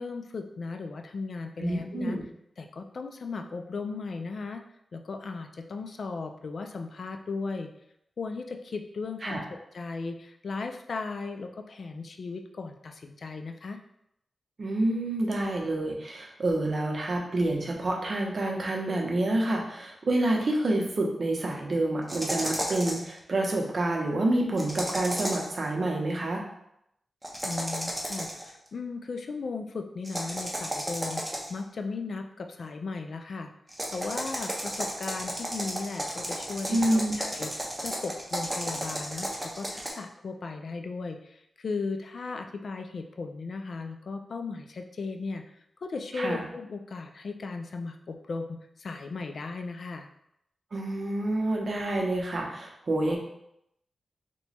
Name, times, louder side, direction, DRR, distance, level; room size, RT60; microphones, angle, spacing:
voice 1, 0.0-2.2 2.6-4.6 4.9-7.7 8.2-13.8 27.4-33.5 33.9-45.4 45.8-50.1, left 4 dB, 60° left, 5 dB, 0.3 m, -36 dB
voice 2, 1.6-2.2 9.2-9.4 14.6-26.5 36.7-37.2 46.1-46.4 50.7-53.2, right 1 dB, 50° right, 0 dB, 0.7 m, -28 dB
sound 1, 22.1-23.1 24.6-25.6 27.2-28.5 30.0-31.6 33.7-39.9, right 1 dB, 10° right, 0.6 m, -33 dB
2.9 x 2.2 x 4.1 m, 0.78 s
wide cardioid pair, 115°, 0 cm